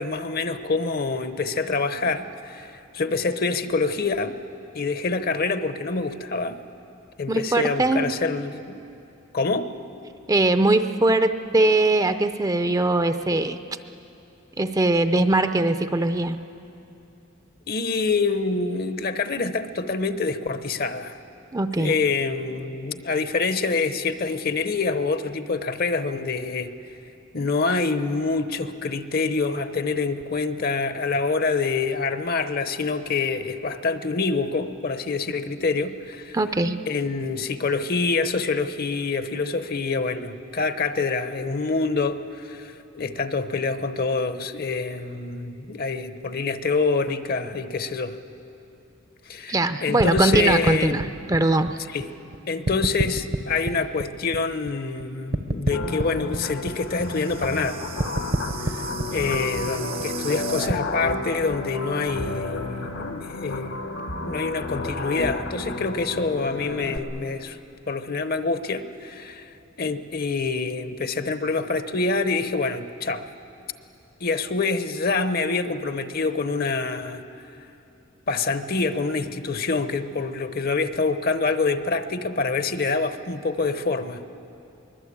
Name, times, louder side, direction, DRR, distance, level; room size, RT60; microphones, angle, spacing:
voice 1, 0.0-4.4 4.7-6.6 7.2-8.8 9.3-9.7 17.7-21.2 21.8-26.7 27.3-36.4 36.9-48.2 49.3-51.1 51.9-52.1 52.5-57.8 58.6-58.9 59.1-63.9 64.2-67.6 67.9-73.3 74.2-77.2 78.3-84.2, left 4 dB, 50° left, 11 dB, 0.9 m, -26 dB
voice 2, 7.3-8.1 10.3-13.6 14.6-16.4 21.5-21.9 36.3-36.8 49.5-51.8, right 2 dB, 20° right, 9 dB, 0.5 m, -21 dB
sound 1, 50.0-52.4 52.7-55.0 55.3-60.7, right 2 dB, 50° right, 0.8 m, -29 dB
sound 2, 55.7-67.0, left 2 dB, 80° left, 1.7 m, -32 dB
23.5 x 20.5 x 8.6 m, 2.8 s
head